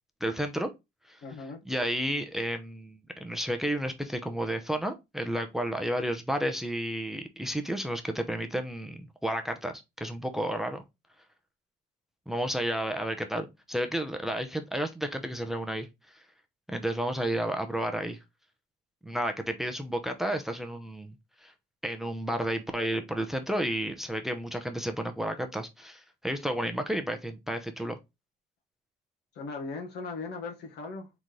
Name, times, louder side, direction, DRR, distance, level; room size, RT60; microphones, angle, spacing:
voice 1, 0.2-0.7 1.1-1.2 1.6-10.8 12.3-16.2 16.7-18.2 19.0-21.1 21.4-21.5 21.8-28.0, right 1 dB, ahead, 0.7 m, -32 dB
voice 2, 1.2-1.6 29.3-31.1, left 4 dB, 75° left, 1.6 m, -38 dB
4.0 x 3.8 x 3.1 m
cardioid pair, 110°, 17 cm